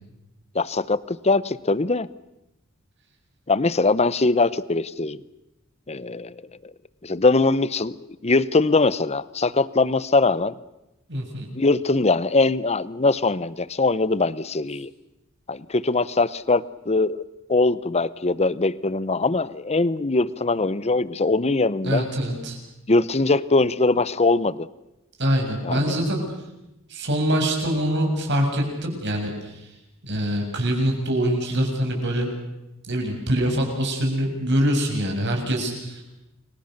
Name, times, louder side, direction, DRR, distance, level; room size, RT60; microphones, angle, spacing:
voice 1, 0.5-2.1 3.5-5.2 5.9-6.3 7.0-10.5 11.5-14.9 15.5-22.1 22.9-24.7 25.6-25.9, left 3 dB, 30° left, 18 dB, 0.8 m, -22 dB
voice 2, 11.1-11.5 21.8-22.6 25.2-26.2 26.9-29.7 30.0-32.3 32.9-36.0, equal, 55° right, 1 dB, 7.4 m, -24 dB
29.5 x 23.5 x 6.7 m, 0.93 s
head